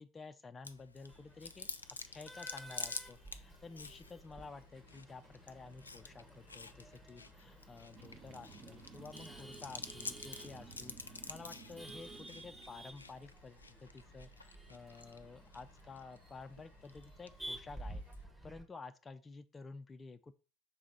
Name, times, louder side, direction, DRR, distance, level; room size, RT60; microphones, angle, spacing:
voice 1, 0.0-1.7 2.1-18.0 18.4-20.3, left 4 dB, 20° left, 8 dB, 0.4 m, -52 dB
Chewing mastication, 0.6-18.2, left 4 dB, 85° left, 0.3 m, -50 dB
Male speech man speaking / Laughter / Chatter, 1.1-18.6, right 1 dB, 10° right, 1.7 m, -53 dB
sound 1, 7.9-13.0, right 4 dB, 45° right, 1.5 m, -56 dB
6.1 x 4.0 x 4.3 m, 0.34 s
figure-of-eight pair, 65°, 0 cm